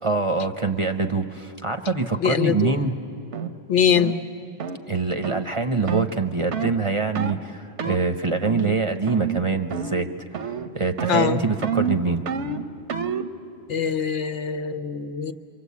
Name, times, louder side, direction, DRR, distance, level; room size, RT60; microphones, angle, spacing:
voice 1, 0.0-3.0 4.9-12.2, right 4 dB, 35° right, 6 dB, 0.6 m, -25 dB
voice 2, 2.2-2.8 3.7-4.2 11.1-11.4 13.7-15.3, left 7 dB, 80° left, 7 dB, 1.2 m, -22 dB
sound 1, 3.3-3.5 4.0-4.2 4.6-4.8 5.2-5.4 5.9-6.1 6.5-6.8 7.2-7.4 7.8-8.0 8.4-8.8 9.1-9.4 9.7-10.1 10.3-10.7 11.0-13.3, right 7 dB, 80° right, 1.1 m, -28 dB
28.5 x 24.0 x 8.3 m, 2.7 s
omnidirectional pair, 1.2 m